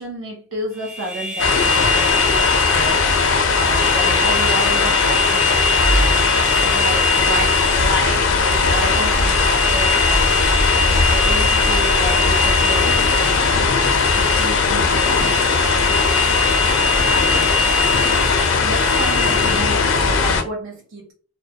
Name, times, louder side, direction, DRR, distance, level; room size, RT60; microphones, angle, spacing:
voice 1, 0.0-2.4 2.7-3.3 3.6-13.5 14.1-15.8 17.0-21.1, right 2 dB, 65° right, 0.6 m, -31 dB
sound 1, 0.8-20.0, left 1 dB, 5° right, 0.4 m, -24 dB
sound 2, 1.4-20.4, left 4 dB, 70° left, 0.4 m, -18 dB
2.2 x 2.2 x 2.6 m
head